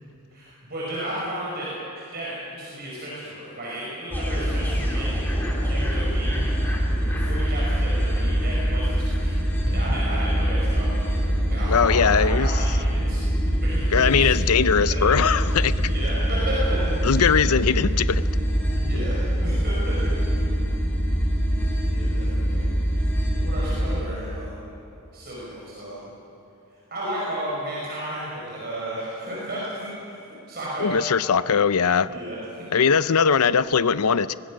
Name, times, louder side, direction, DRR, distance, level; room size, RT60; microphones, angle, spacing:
voice 1, 0.3-5.3 5.7-6.5 7.0-9.4 9.7-11.2 11.5-13.2 13.5-14.5 15.3-15.4 15.8-17.0 18.7-20.0 21.8-22.6 23.3-24.7 25.1-26.1 26.9-30.2 30.5-31.0 32.0-32.4, right 1 dB, 45° right, 5.5 m, -33 dB
sound 1, 4.1-24.0, equal, 10° left, 2.8 m, -24 dB
sound 2, 9.7-19.7, right 1 dB, 60° left, 4.2 m, -37 dB
voice 2, 11.7-12.5 13.9-15.8 17.0-18.2 30.8-32.1 32.7-34.3, left 6 dB, 80° left, 0.6 m, -20 dB
23.0 x 20.5 x 6.4 m
head